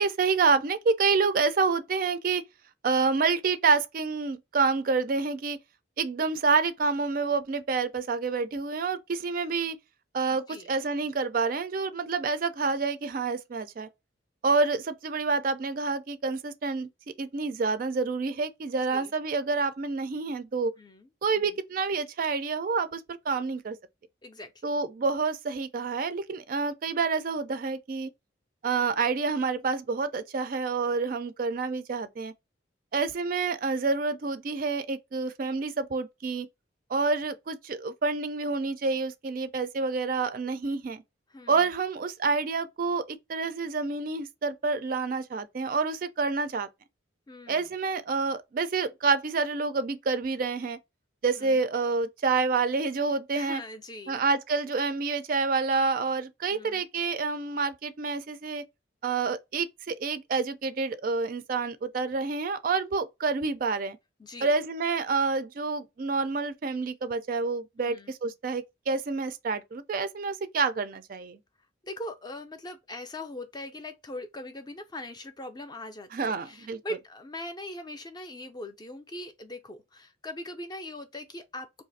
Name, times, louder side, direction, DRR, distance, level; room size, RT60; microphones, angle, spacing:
voice 1, 0.0-2.4 2.8-5.6 6.0-9.8 10.1-13.9 14.4-16.9 17.2-20.7 21.2-23.8 24.6-28.1 28.6-32.3 32.9-36.5 36.9-41.0 41.5-46.7 47.5-50.8 51.2-53.6 54.1-58.6 59.0-64.0 64.4-71.4 76.1-76.8, right 4 dB, 45° right, 0.3 m, -28 dB
voice 2, 10.3-10.7 18.9-19.1 20.8-21.1 21.4-21.6 24.2-24.7 41.3-41.7 47.3-47.7 51.4-51.6 53.3-54.2 56.5-56.8 64.2-64.6 67.8-68.1 71.8-81.8, left 1 dB, 20° left, 0.4 m, -41 dB
2.6 x 2.4 x 3.9 m
head